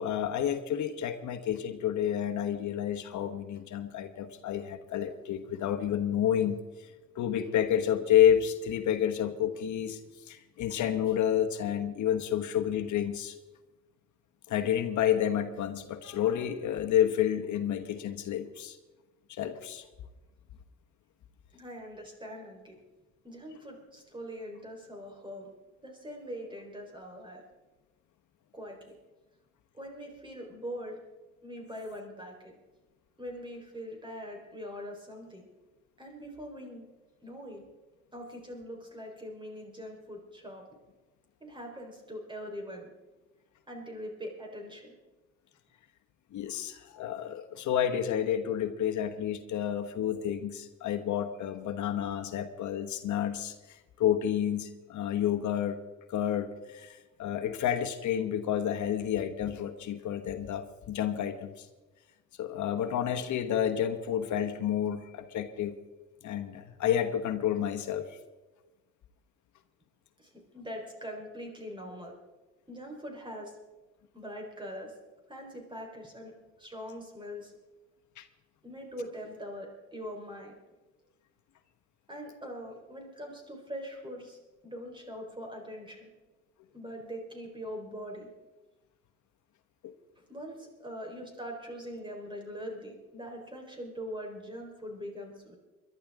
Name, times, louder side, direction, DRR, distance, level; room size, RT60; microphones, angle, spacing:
voice 1, 0.0-6.9 7.1-10.0 10.3-13.4 14.5-18.8 19.3-19.8 46.3-55.8 56.1-61.7 62.4-65.8 66.2-68.2 78.2-78.3 89.8-89.9, left 10 dB, 75° left, 6 dB, 1.1 m, -30 dB
voice 2, 21.5-22.8 23.2-25.5 25.8-27.4 28.5-28.9 29.7-31.0 31.4-32.5 33.2-35.5 36.0-36.9 37.2-37.6 38.1-40.6 41.4-42.9 43.7-45.0 70.2-72.1 72.7-73.5 74.1-74.9 75.3-76.3 76.6-77.5 78.6-80.5 82.1-84.4 84.6-86.1 86.7-88.3 90.2-95.6, equal, 15° right, 1 dB, 4.3 m, -42 dB
22.5 x 12.0 x 3.7 m, 1.2 s
cardioid pair, 90°, 30 cm